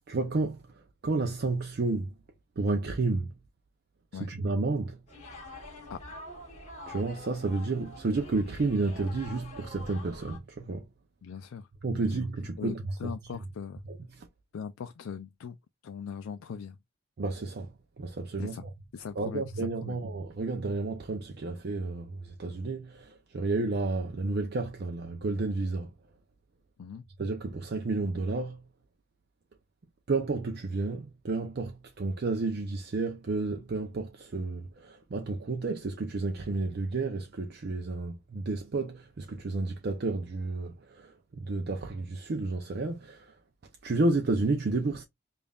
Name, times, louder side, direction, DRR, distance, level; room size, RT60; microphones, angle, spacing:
voice 1, 0.1-0.6 1.0-2.1 2.6-3.3 4.2-5.0 6.9-10.9 11.8-13.1 14.2-14.3 17.2-18.7 19.2-25.9 27.2-28.6 30.1-41.1 41.4-43.3 43.8-45.0, right 3 dB, 50° right, 0.5 m, -31 dB
sound 1, 5.1-10.4, left 1 dB, 35° left, 1.5 m, -45 dB
voice 2, 11.2-11.7 11.9-12.2 12.6-13.8 14.5-15.6 15.8-16.8 18.4-18.6 18.9-20.0 26.8-27.1, left 7 dB, 75° left, 0.4 m, -40 dB
5.2 x 2.5 x 2.3 m
head